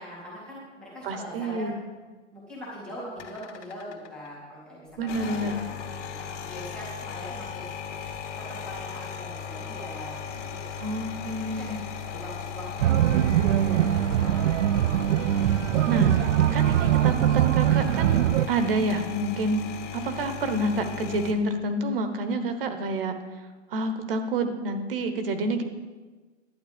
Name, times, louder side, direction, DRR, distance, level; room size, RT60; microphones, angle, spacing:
voice 1, 0.0-1.7 2.3-5.8 6.2-7.7 8.5-10.1 10.4-10.6 11.5-11.7 12.0-14.5 14.8-15.2, equal, 5° right, -12 dB, 0.3 m, -42 dB
voice 2, 1.0-1.7 5.0-5.6 10.8-11.8 15.9-16.1 16.5-18.2 18.5-19.6 19.9-23.1 23.7-25.6, right 2 dB, 50° right, 8 dB, 1.2 m, -28 dB
sound 1, 3.2-4.3 5.0-21.3, left 7 dB, 75° left, 1.6 m, -37 dB
sound 2, 12.8-18.5, right 12 dB, 85° right, 0.5 m, -22 dB
11.5 x 8.6 x 5.2 m, 1.3 s
hypercardioid pair, 170°, 36 cm